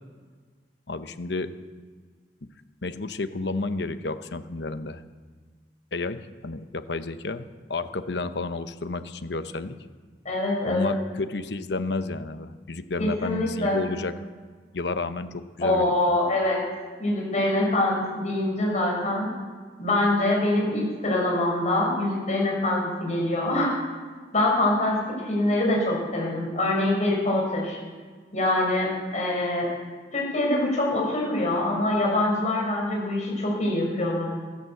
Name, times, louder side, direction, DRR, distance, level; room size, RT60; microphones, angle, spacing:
voice 1, 0.9-1.5 2.8-5.0 5.9-9.8 10.6-14.1 14.7-16.2, left 3 dB, 70° left, 10 dB, 0.9 m, -31 dB
voice 2, 10.2-10.9 13.0-13.8 15.6-16.6 17.0-19.3 19.8-23.7 24.3-25.0 25.2-27.8 28.3-29.7 30.1-34.3, left 1 dB, 45° left, -2 dB, 6.2 m, -24 dB
14.0 x 12.5 x 7.9 m, 1.5 s
head